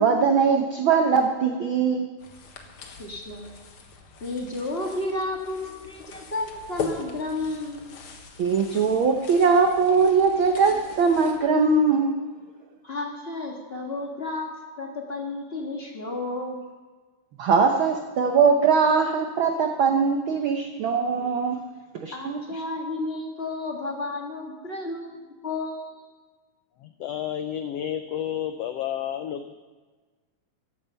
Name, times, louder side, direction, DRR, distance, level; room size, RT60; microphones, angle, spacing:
voice 1, 0.0-2.1 8.4-12.2 17.4-21.6 22.0-22.4, right 5 dB, 85° right, 5 dB, 1.1 m, -21 dB
sound 1, 2.2-11.4, left 5 dB, 55° left, 1.8 m, -41 dB
voice 2, 3.0-3.5 4.2-7.9 12.8-16.7 22.1-26.0, left 2 dB, 30° left, 0 dB, 1.1 m, -32 dB
voice 3, 26.8-29.5, left 10 dB, 85° left, 9 dB, 1.4 m, -31 dB
14.5 x 11.0 x 5.6 m, 1.3 s
omnidirectional pair, 3.5 m